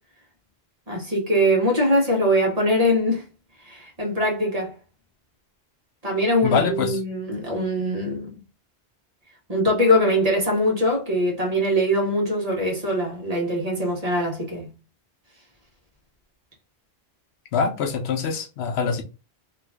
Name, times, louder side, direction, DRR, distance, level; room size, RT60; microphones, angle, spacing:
voice 1, 0.9-3.2 3.6-4.7 6.0-8.3 9.5-14.7, equal, 35° right, 1.2 m, -22 dB
voice 2, 6.4-7.0 17.5-19.0, left 6 dB, 75° left, 0.8 m, -24 dB
2.9 x 2.5 x 3.4 m
omnidirectional pair, 1.1 m